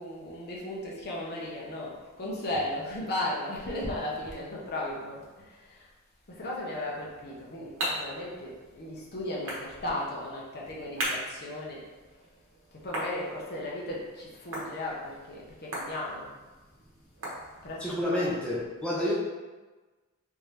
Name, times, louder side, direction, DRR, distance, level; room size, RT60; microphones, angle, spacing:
voice 1, 0.0-5.9 6.3-11.8 12.7-16.3 17.6-18.6, left 1 dB, 45° left, -4 dB, 0.8 m, -36 dB
sound 1, 7.1-17.9, right 1 dB, 60° right, 1.0 m, -40 dB
voice 2, 17.8-19.1, left 1 dB, 5° left, -7 dB, 0.6 m, -29 dB
3.6 x 2.8 x 3.2 m, 1.2 s
head